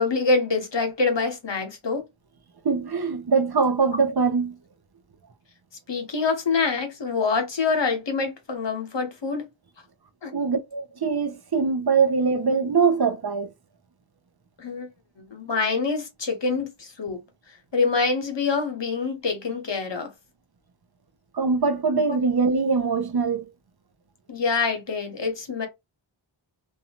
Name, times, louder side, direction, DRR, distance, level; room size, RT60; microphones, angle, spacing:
voice 1, 0.0-2.0 5.9-9.5 10.2-10.3 14.6-14.9 15.2-17.2 17.7-20.1 24.3-25.7, left 4 dB, 60° left, 0.9 m, -25 dB
voice 2, 2.6-4.6 10.3-13.5 21.3-23.5, right 5 dB, 55° right, 0.6 m, -22 dB
2.7 x 2.3 x 2.8 m
wide cardioid pair, 45°, 48 cm